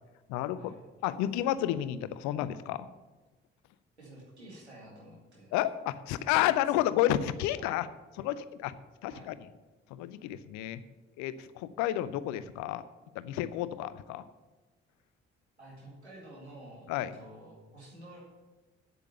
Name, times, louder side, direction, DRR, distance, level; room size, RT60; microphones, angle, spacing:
voice 1, 0.3-0.7 1.0-2.9 5.5-7.9 8.2-8.7 9.0-9.4 9.9-10.8 11.2-12.8 13.2-14.2 16.9-17.1, left 13 dB, 60° left, 15 dB, 0.6 m, -31 dB
voice 2, 4.0-5.5 7.6-7.7 9.1-9.3 15.6-16.9 17.1-18.2, right 1 dB, 85° right, -4 dB, 2.0 m, -50 dB
8.5 x 8.2 x 6.8 m, 1.2 s
figure-of-eight pair, 40°, 33 cm